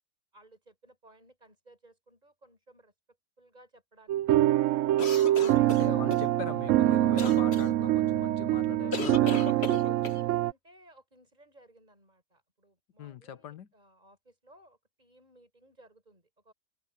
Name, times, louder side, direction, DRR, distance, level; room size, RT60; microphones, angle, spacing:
voice 1, 0.3-2.9 3.4-4.5 5.1-6.0 10.4-16.5, right 1 dB, 25° right, 5.8 m, -58 dB
sound 1, 4.1-10.5, right 14 dB, 75° right, 0.7 m, -25 dB
sound 2, 5.0-6.2 7.2-7.6 8.9-10.2, left 3 dB, 40° left, 1.9 m, -35 dB
voice 2, 5.7-10.3 13.0-13.7, left 9 dB, 80° left, 1.7 m, -42 dB
omnidirectional pair, 1.8 m